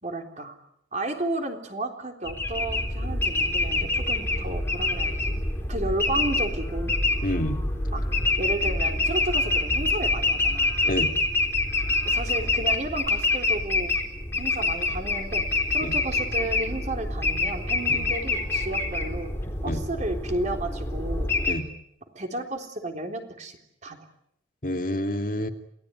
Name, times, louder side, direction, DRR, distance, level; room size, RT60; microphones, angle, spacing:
voice 1, 0.0-0.5 0.9-5.4 5.7-7.0 7.9-8.1 8.4-10.8 12.0-13.9 14.4-19.3 19.6-21.3 22.1-24.1, right 1 dB, 40° right, 4 dB, 3.7 m, -33 dB
sound 1, 2.3-21.5, left 2 dB, 15° left, 3.9 m, -26 dB
voice 2, 7.2-7.6 10.8-11.1 15.8-16.0 17.9-18.1 19.6-19.8 21.4-21.6 24.6-25.5, left 1 dB, 45° left, 5 dB, 2.6 m, -28 dB
29.5 x 18.5 x 9.7 m, 0.75 s
head